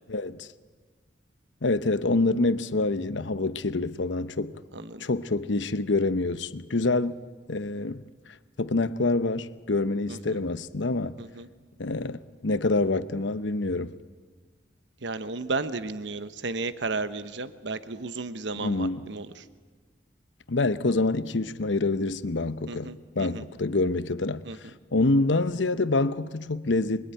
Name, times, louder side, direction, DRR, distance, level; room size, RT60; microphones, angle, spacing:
voice 1, 0.1-0.5 1.6-4.5 5.0-7.2 7.5-8.0 8.6-11.2 11.8-13.9 18.5-19.1 20.5-24.5 24.9-27.1, left 2 dB, 75° left, 0.9 m, -26 dB
voice 2, 4.7-5.0 10.1-10.4 11.2-11.5 15.0-19.3 22.7-23.4 24.4-24.6, right 3 dB, 65° right, 1.0 m, -33 dB
26.0 x 23.0 x 9.2 m
head